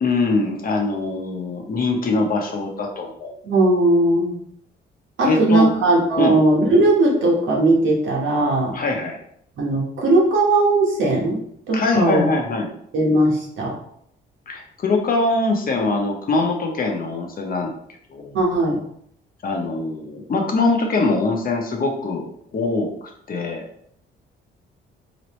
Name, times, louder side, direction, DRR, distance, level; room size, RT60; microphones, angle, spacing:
voice 1, 0.0-3.3 5.2-5.7 6.2-6.4 8.7-9.2 11.7-12.7 14.5-17.7 18.1-18.4 19.4-22.2 22.5-23.7, left 3 dB, 45° left, 1 dB, 0.9 m, -22 dB
voice 2, 3.5-4.4 5.2-8.7 9.6-11.4 11.7-12.3 12.9-13.7 18.3-18.8, right 2 dB, 80° right, -2 dB, 1.4 m, -18 dB
3.9 x 3.1 x 3.1 m, 0.68 s
cardioid pair, 90°, 20 cm